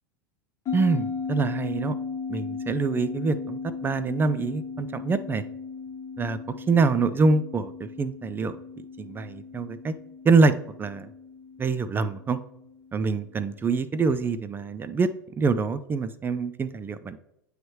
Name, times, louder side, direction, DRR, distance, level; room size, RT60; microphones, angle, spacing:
sound 1, 0.7-13.4, left 5 dB, 35° left, 1.1 m, -36 dB
voice 1, 0.7-2.0 2.3-5.4 6.2-6.4 6.7-8.6 9.0-9.9 10.2-10.5 10.8-11.1 11.6-12.4 12.9-15.1 15.4-17.2, right 4 dB, 20° right, 13 dB, 0.4 m, -25 dB
9.3 x 3.2 x 3.1 m, 0.80 s
hypercardioid pair, 95°, 10 cm